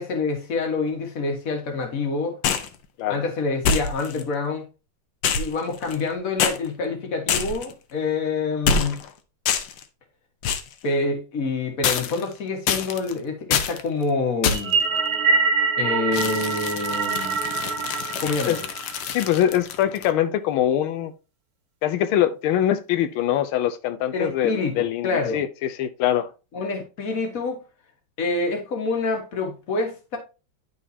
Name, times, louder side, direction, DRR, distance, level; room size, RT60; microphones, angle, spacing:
voice 1, 0.0-2.4 3.1-4.7 5.4-9.0 10.8-14.7 15.8-17.4 18.2-18.7 24.1-25.4 26.5-27.6 28.2-30.2, left 3 dB, 45° left, 1.7 m, -27 dB
sound 1, 2.4-2.8 3.6-4.2 5.2-6.1 6.4-6.6 7.3-7.7 8.7-9.1 9.5-9.8 10.4-10.7 11.8-12.3 12.7-13.1 13.5-13.8 14.4-14.8 16.1-20.1, left 6 dB, 70° left, 1.4 m, -25 dB
sound 2, 14.5-19.1, right 4 dB, 50° right, 1.5 m, -24 dB
voice 2, 19.0-21.1 21.8-25.5 25.8-26.3, left 11 dB, 90° left, 1.5 m, -23 dB
11.0 x 3.9 x 2.7 m
omnidirectional pair, 2.2 m